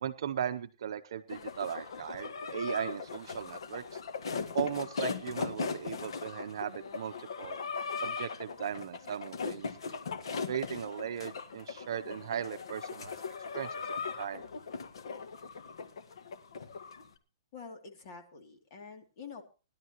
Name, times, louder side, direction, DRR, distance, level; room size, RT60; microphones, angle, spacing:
voice 1, 0.0-4.0 4.5-7.6 8.0-9.9 10.5-13.1 13.5-13.8 14.2-14.4, right 9 dB, 60° right, 9 dB, 0.7 m, -37 dB
sound 1, 1.3-17.1, left 5 dB, 75° left, 1.6 m, -39 dB
voice 2, 17.5-19.4, left 5 dB, 35° left, 3 dB, 2.8 m, -47 dB
20.0 x 11.5 x 3.0 m, 0.33 s
hypercardioid pair, 165°, 3 cm